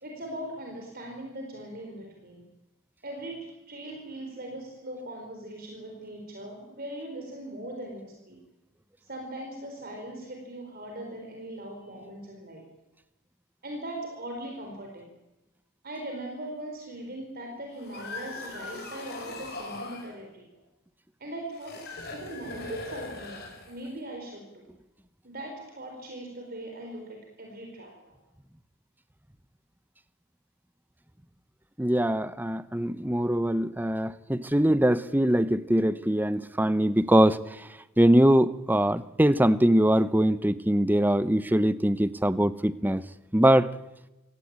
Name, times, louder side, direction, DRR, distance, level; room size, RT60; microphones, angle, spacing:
voice 1, 0.0-2.4 3.0-8.4 9.0-12.6 13.6-15.1 15.8-20.6 21.2-21.8 22.1-24.6 25.2-28.2, right 1 dB, 45° right, 1 dB, 4.2 m, -40 dB
sound 1, 17.7-20.1 21.5-24.0, left 3 dB, 50° left, 5.6 m, -40 dB
voice 2, 31.8-37.4 38.0-43.0 43.3-43.7, right 1 dB, 10° right, 15 dB, 0.7 m, -22 dB
27.0 x 17.0 x 8.9 m, 1.0 s
head